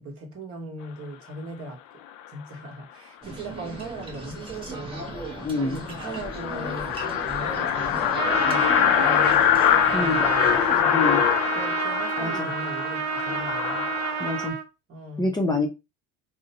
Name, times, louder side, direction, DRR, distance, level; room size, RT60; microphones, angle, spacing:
voice 1, 0.0-1.8 2.3-5.3 5.6-11.0 11.5-13.9 14.9-15.4, right 1 dB, 40° right, 1.1 m, -39 dB
sound 1, 3.2-10.8, right 2 dB, 15° right, 0.9 m, -37 dB
sound 2, 4.6-4.7 5.0-5.1 5.4-5.5 5.8-14.5, left 10 dB, 65° left, 0.5 m, -24 dB
voice 2, 5.4-5.8 9.9-10.2 10.9-11.2 12.2-12.5 14.2-14.6 15.2-15.7, left 3 dB, 10° left, 0.6 m, -26 dB
Trumpet, 8.1-14.6, right 8 dB, 85° right, 0.6 m, -30 dB
2.5 x 2.1 x 2.7 m
supercardioid pair, 90°, 37 cm